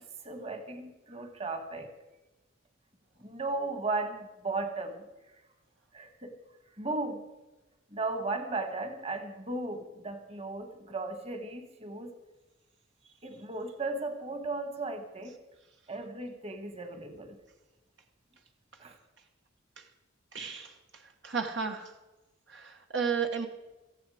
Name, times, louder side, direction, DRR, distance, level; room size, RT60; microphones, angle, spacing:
voice 1, 0.2-1.9 3.2-5.1 5.9-6.4 6.8-7.2 7.9-12.1 13.2-15.4 15.9-17.4 18.8-19.0, right 3 dB, 30° right, 7 dB, 1.6 m, -36 dB
voice 2, 20.3-20.7 21.2-21.9 22.5-23.5, right 6 dB, 65° right, 4 dB, 1.2 m, -33 dB
17.5 x 15.0 x 5.0 m, 1.1 s
head